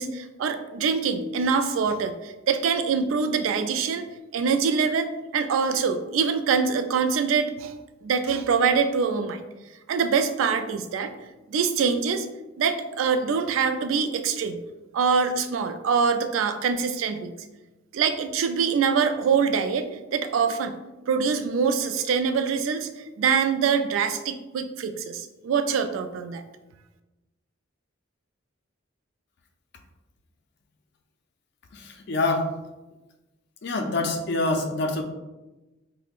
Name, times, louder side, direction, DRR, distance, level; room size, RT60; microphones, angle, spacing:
voice 1, 0.0-4.1 4.3-7.7 8.0-9.4 9.9-11.1 11.5-12.3 12.6-14.6 14.9-17.3 17.9-20.8 21.1-26.4, right 6 dB, 85° right, 9 dB, 0.3 m, -24 dB
voice 2, 31.7-32.5 33.6-35.0, left 2 dB, 55° left, 4 dB, 0.5 m, -26 dB
5.2 x 2.1 x 2.4 m, 1.1 s
head